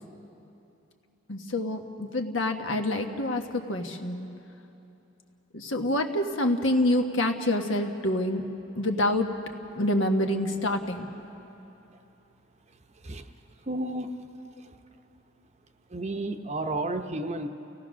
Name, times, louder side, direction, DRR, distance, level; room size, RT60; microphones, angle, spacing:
voice 1, 1.3-4.3 5.5-8.4 8.7-9.3 9.7-11.1, left 1 dB, 70° left, 4 dB, 1.4 m, -27 dB
voice 2, 13.7-14.1 15.9-17.5, right 2 dB, 35° right, 7 dB, 0.8 m, -31 dB
30.0 x 17.5 x 6.3 m, 2.9 s
head